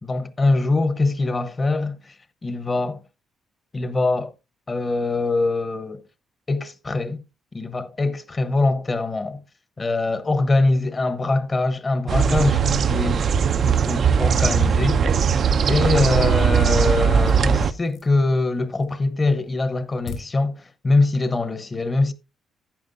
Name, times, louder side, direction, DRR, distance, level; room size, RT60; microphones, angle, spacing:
voice 1, 0.0-2.1 2.4-3.0 3.7-4.3 4.7-6.0 6.5-7.2 7.5-9.4 9.8-13.3 13.6-15.0 15.7-22.1, left 2 dB, 30° left, 1.0 m, -23 dB
sound 1, 12.1-17.7, right 7 dB, 55° right, 0.5 m, -19 dB
sound 2, 14.9-18.2 18.6-19.1 19.5-20.2, left 5 dB, 70° left, 3.3 m, -41 dB
12.0 x 8.9 x 2.6 m
cardioid pair, 90°, 0 cm